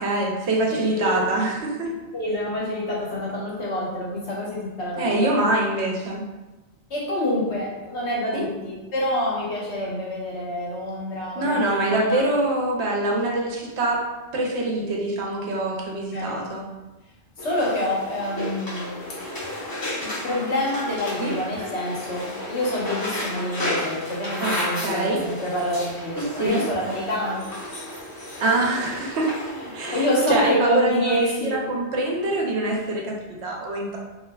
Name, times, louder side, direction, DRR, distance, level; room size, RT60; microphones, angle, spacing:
voice 1, 0.0-1.9 5.0-6.2 8.3-8.5 11.4-14.1 14.3-16.7 21.2-21.4 24.4-24.6 24.8-25.2 26.2-26.6 28.4-29.4 29.7-34.0, right 2 dB, 75° right, -1 dB, 0.9 m, -24 dB
voice 2, 0.7-1.1 2.1-5.3 6.9-12.2 15.9-16.5 17.4-27.5 29.6-31.6, left 1 dB, 75° left, -4 dB, 1.1 m, -27 dB
sound 1, 17.4-30.3, left 1 dB, 25° left, 0.6 m, -33 dB
3.4 x 2.6 x 2.2 m, 1.1 s
omnidirectional pair, 1.2 m